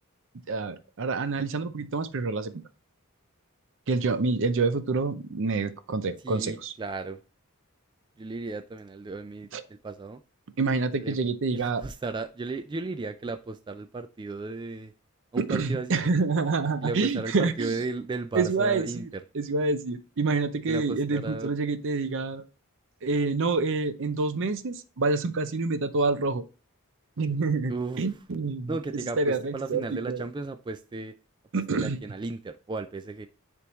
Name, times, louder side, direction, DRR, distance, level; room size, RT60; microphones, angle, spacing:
voice 1, 0.5-2.6 3.9-6.7 9.5-9.6 10.6-11.8 15.5-17.7 18.3-22.4 23.0-26.4 27.2-27.7 28.0-30.2 31.5-32.0, right 3 dB, 60° right, 12 dB, 0.6 m, -27 dB
voice 2, 6.2-7.2 8.2-10.2 11.0-11.2 11.5-14.9 15.3-16.0 16.8-19.2 20.7-21.5 27.7-28.0 28.7-31.1 31.7-33.3, right 3 dB, 20° right, 8 dB, 0.3 m, -35 dB
9.7 x 3.5 x 3.1 m, 0.36 s
head